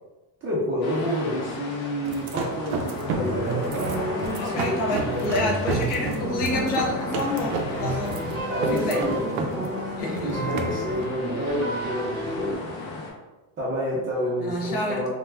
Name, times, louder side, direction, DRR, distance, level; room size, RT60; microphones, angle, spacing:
voice 1, 0.4-4.0 4.4-6.3 8.5-12.5 13.6-15.1, equal, 30° right, -6 dB, 0.6 m, -29 dB
sound 1, 0.8-13.1, left 2 dB, 50° left, 0.7 m, -37 dB
sound 2, 2.1-12.7, right 3 dB, 85° right, 0.6 m, -33 dB
sound 3, 3.1-12.5, right 1 dB, 45° right, 1.0 m, -31 dB
voice 2, 4.4-8.4 8.7-9.0 10.0-10.5 12.8-13.0 14.4-15.1, left 2 dB, 25° left, -2 dB, 0.3 m, -28 dB
2.3 x 2.2 x 3.2 m, 1.1 s
cardioid pair, 160°, 43 cm